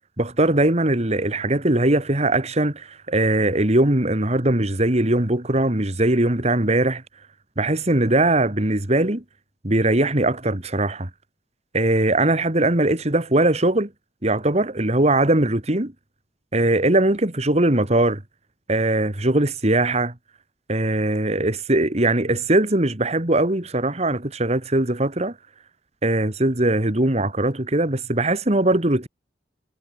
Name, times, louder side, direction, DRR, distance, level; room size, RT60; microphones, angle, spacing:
voice 1, 0.2-7.0 7.6-9.2 9.6-11.1 11.7-13.9 14.2-15.9 16.5-18.2 18.7-20.1 20.7-25.4 26.0-29.1, right 1 dB, 35° right, 2.2 m, -20 dB
head